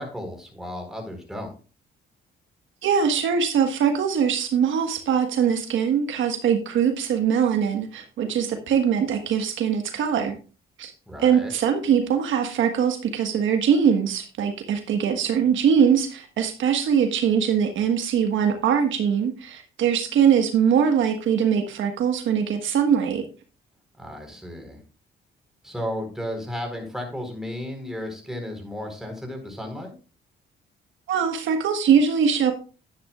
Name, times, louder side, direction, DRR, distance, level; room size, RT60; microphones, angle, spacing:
voice 1, 0.0-1.5 11.1-11.5 24.0-24.8 25.6-29.9, left 1 dB, ahead, 2 dB, 4.3 m, -34 dB
voice 2, 2.8-10.4 10.8-10.9 11.2-23.2 31.1-32.5, right 7 dB, 75° right, 5 dB, 1.5 m, -22 dB
11.5 x 9.7 x 2.4 m, 0.35 s
cardioid pair, 90°, 20 cm